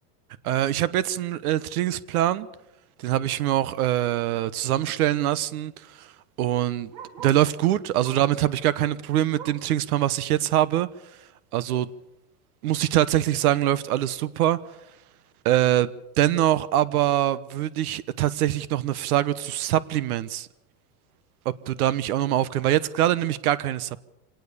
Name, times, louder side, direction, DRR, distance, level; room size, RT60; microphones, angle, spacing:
voice 1, 0.4-2.5 3.0-6.1 6.4-6.9 7.2-10.9 11.5-11.9 12.6-14.6 15.4-15.9 16.2-20.5 21.4-24.0, right 13 dB, 80° right, 1.2 m, -23 dB
Bark, 5.8-7.5 8.0-8.4 8.8-9.8 10.2-10.3 10.7-10.8 11.5-11.6, right 8 dB, 60° right, 5.6 m, -46 dB
25.5 x 18.5 x 6.9 m
supercardioid pair, 145°, 43 cm